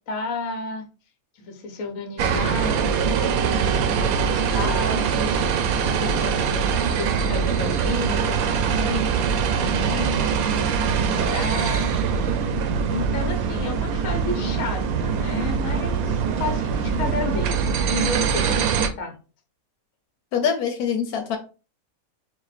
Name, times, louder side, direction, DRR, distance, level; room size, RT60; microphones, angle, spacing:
voice 1, 0.1-0.9 1.4-5.4 5.8-10.5 10.8-11.9 12.2-12.4 12.9-19.2, left 3 dB, 65° left, 5 dB, 1.3 m, -32 dB
sound 1, 2.2-18.9, right 6 dB, 75° right, 1.0 m, -23 dB
voice 2, 20.3-21.4, left 7 dB, 85° left, 5 dB, 1.1 m, -24 dB
4.3 x 2.1 x 4.0 m, 0.34 s
omnidirectional pair, 1.5 m